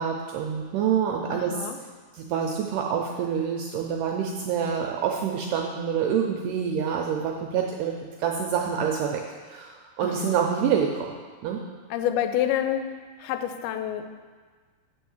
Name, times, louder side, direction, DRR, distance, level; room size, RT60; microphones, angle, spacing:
voice 1, 0.0-1.7 2.1-11.1 11.4-11.6, right 7 dB, 80° right, 1 dB, 1.9 m, -27 dB
voice 2, 1.3-1.8 10.0-10.4 11.9-12.9 13.2-14.1, left 11 dB, 90° left, 8 dB, 2.5 m, -28 dB
7.6 x 4.5 x 7.1 m, 1.5 s
omnidirectional pair, 4.3 m